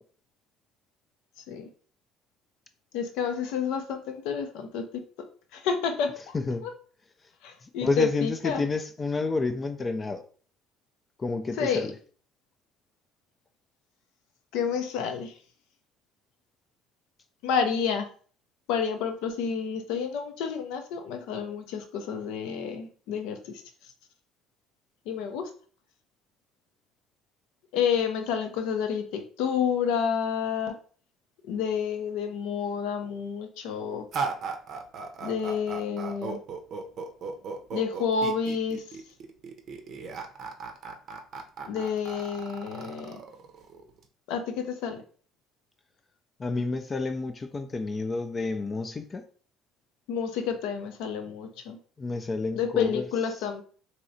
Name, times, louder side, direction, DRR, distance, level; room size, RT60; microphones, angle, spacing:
voice 1, 2.9-5.0 5.5-6.3 6.6-6.7 7.4-8.6 11.6-11.9 14.5-15.3 17.4-18.1 18.7-23.6 25.1-25.5 27.7-30.8 31.4-34.1 35.2-36.4 37.7-39.0 41.6-43.2 44.3-45.0 46.5-46.8 50.1-51.8 52.5-53.6, left 7 dB, 80° left, 0.5 m, -29 dB
voice 2, 6.3-6.7 7.6-10.2 11.2-11.9 46.4-49.2 52.0-53.0, left 3 dB, 30° left, 0.3 m, -29 dB
sound 1, 34.1-44.1, right 4 dB, 55° right, 0.5 m, -37 dB
3.1 x 2.8 x 2.6 m
supercardioid pair, 90°, 0 cm